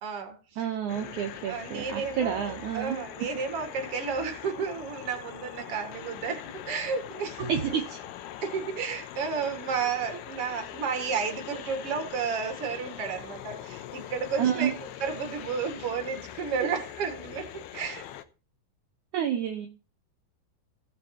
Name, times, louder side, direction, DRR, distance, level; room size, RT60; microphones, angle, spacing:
voice 1, 0.0-0.7 1.5-7.8 8.4-14.7 15.0-17.5 17.7-18.0, right 6 dB, 50° right, 5 dB, 2.0 m, -32 dB
voice 2, 0.6-3.0 7.5-7.8 14.4-14.7 19.1-19.7, right 9 dB, 75° right, 4 dB, 1.8 m, -29 dB
sound 1, 0.9-18.2, left 11 dB, 80° left, 2.7 m, -42 dB
17.0 x 7.4 x 2.9 m, 0.33 s
omnidirectional pair, 4.8 m